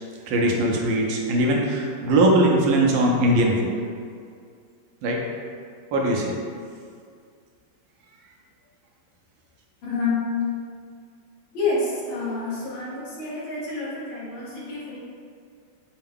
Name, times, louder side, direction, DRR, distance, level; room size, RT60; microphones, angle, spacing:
voice 1, 0.3-3.7 5.0-5.2 5.9-6.3, right 1 dB, 75° right, -1 dB, 1.3 m, -20 dB
voice 2, 9.8-10.4 11.5-15.0, left 3 dB, 75° left, -8 dB, 1.9 m, -28 dB
5.5 x 2.2 x 3.5 m, 2.2 s
omnidirectional pair, 2.2 m